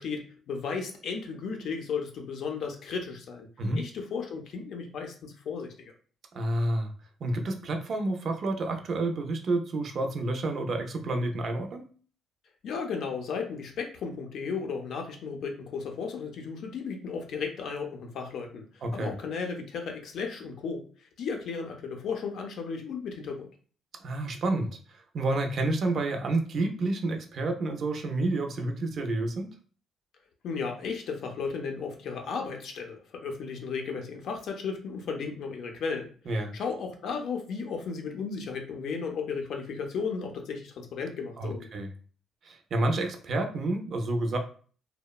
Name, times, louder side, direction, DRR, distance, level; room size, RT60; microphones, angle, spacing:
voice 1, 0.0-3.5 3.7-5.9 12.6-18.7 18.9-20.9 21.2-23.5 30.4-36.1 36.5-41.7, left 5 dB, 60° left, 3 dB, 0.5 m, -34 dB
voice 2, 6.3-6.9 7.2-11.9 18.8-19.1 24.0-24.7 24.9-29.5 36.3-36.5 41.4-41.9 42.4-44.4, right 2 dB, 45° right, 5 dB, 0.4 m, -29 dB
2.8 x 2.0 x 2.3 m, 0.42 s
cardioid pair, 150°, 0 cm